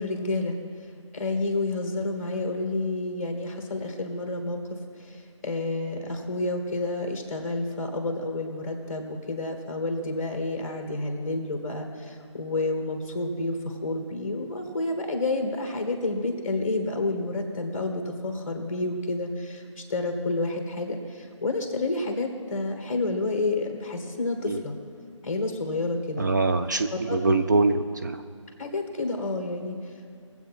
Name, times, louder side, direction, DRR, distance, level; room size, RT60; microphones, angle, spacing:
voice 1, 0.0-24.7 25.2-26.3 26.9-27.2 28.6-30.1, left 2 dB, 25° left, 4 dB, 1.6 m, -30 dB
voice 2, 26.2-28.2, right 3 dB, 35° right, 6 dB, 0.4 m, -24 dB
21.0 x 8.2 x 4.2 m, 2.4 s
figure-of-eight pair, 155°, 17 cm